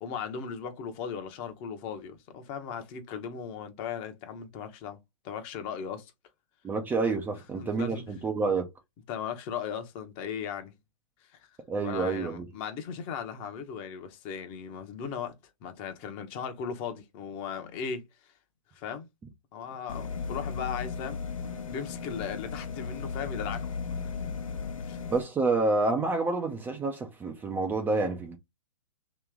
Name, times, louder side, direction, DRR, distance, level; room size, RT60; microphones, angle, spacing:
voice 1, 0.0-5.0 5.2-6.1 7.5-8.2 9.1-10.7 11.3-11.5 11.8-15.3 15.6-18.0 18.7-19.1 19.5-21.2 21.7-24.1 24.8-25.0, left 7 dB, 30° left, 0.9 m, -37 dB
voice 2, 6.6-8.7 11.7-12.5 25.1-28.4, right 3 dB, 10° right, 0.5 m, -28 dB
sound 1, 19.9-25.2, left 5 dB, 75° left, 0.9 m, -36 dB
3.0 x 2.9 x 3.6 m
hypercardioid pair, 125°, 17 cm